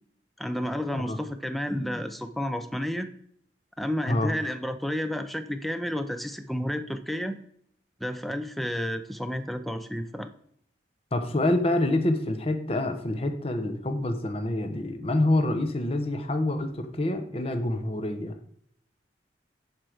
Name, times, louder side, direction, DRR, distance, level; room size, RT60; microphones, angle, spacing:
voice 1, 0.4-3.1 3.8-7.4 8.0-10.3, equal, ahead, 9 dB, 0.5 m, -31 dB
voice 2, 11.1-18.3, left 1 dB, 35° left, 6 dB, 0.9 m, -27 dB
10.5 x 4.6 x 4.9 m, 0.67 s
head